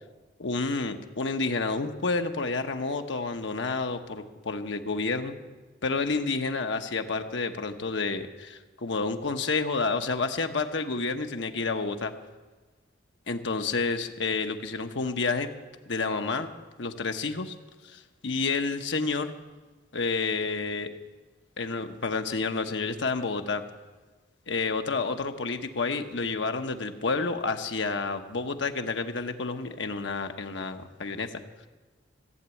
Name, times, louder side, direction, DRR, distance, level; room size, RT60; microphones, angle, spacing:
voice 1, 0.4-5.3 5.8-12.1 13.3-15.5 15.9-16.5 16.8-17.6 17.8-19.3 19.9-20.9 21.6-23.6 24.5-31.4, left 4 dB, 65° left, 6 dB, 0.9 m, -29 dB
15.5 x 8.0 x 8.4 m, 1.3 s
head